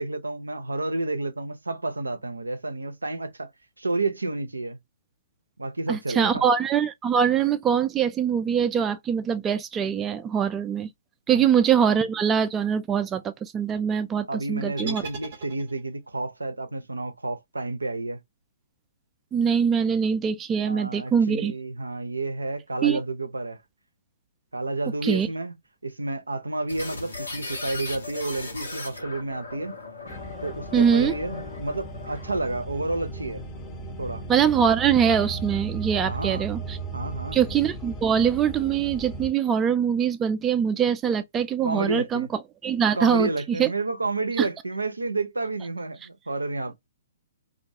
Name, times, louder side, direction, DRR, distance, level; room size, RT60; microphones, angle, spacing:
voice 1, 0.0-3.5 3.8-4.8 5.6-6.5 11.3-11.5 14.3-18.2 20.6-23.6 24.5-25.5 25.8-29.7 30.4-33.4 34.0-34.3 36.0-36.5 36.9-37.4 41.6-42.3 42.9-46.7, right 2 dB, 85° right, 0.5 m, -30 dB
voice 2, 5.9-10.9 11.3-15.0 19.3-21.5 22.8-23.0 25.0-25.3 30.7-31.1 34.3-36.8 37.3-42.3 42.6-43.7 44.4-44.5, right 7 dB, 15° right, 0.3 m, -23 dB
sound 1, 14.8-16.1, right 3 dB, 45° right, 0.7 m, -39 dB
sound 2, 26.7-32.5, left 3 dB, 80° left, 1.1 m, -38 dB
sound 3, 30.1-39.3, right 3 dB, 20° left, 0.7 m, -36 dB
2.4 x 2.2 x 2.6 m
figure-of-eight pair, 125°, 0 cm